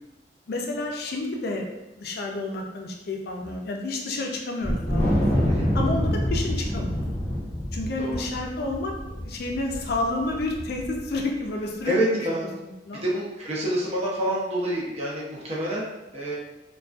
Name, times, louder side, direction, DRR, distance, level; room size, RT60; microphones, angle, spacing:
voice 1, 0.5-1.7 2.0-5.2 5.7-7.0 7.7-12.3 12.6-13.0, left 2 dB, 60° left, 1 dB, 0.4 m, -30 dB
Wind, 4.6-11.1, equal, 10° left, 0.6 m, -26 dB
voice 2, 11.9-12.5 13.0-16.4, right 1 dB, 35° right, -5 dB, 0.6 m, -27 dB
2.3 x 2.2 x 2.4 m, 0.99 s
head